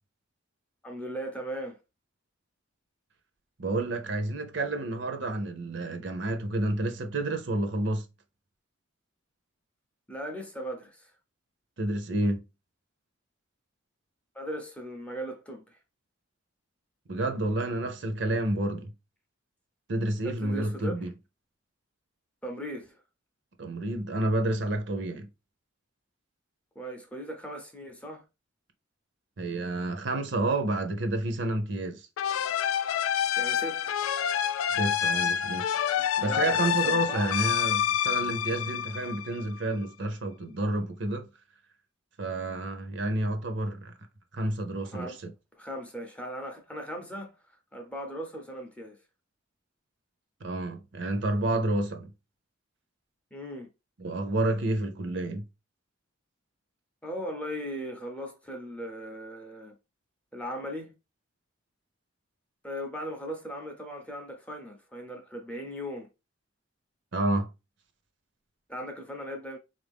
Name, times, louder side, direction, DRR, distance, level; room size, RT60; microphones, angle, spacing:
voice 1, 0.8-1.8 10.1-11.1 14.3-15.8 20.2-21.1 22.4-23.0 26.8-28.2 33.4-34.0 36.0-37.4 44.9-45.2 45.6-47.3 47.7-49.0 53.3-53.7 57.0-59.7 60.3-60.9 62.6-66.1 68.7-69.6, equal, 5° left, 0.6 m, -38 dB
voice 2, 3.6-8.1 11.8-12.4 17.1-18.9 19.9-21.1 23.6-25.3 29.4-32.1 34.7-35.7 36.2-41.3 42.2-43.9 44.3-45.3 50.4-52.1 54.0-55.5 67.1-67.5, right 2 dB, 60° right, 0.7 m, -29 dB
sound 1, 32.2-39.6, left 9 dB, 85° left, 0.3 m, -28 dB
3.8 x 2.6 x 3.4 m
head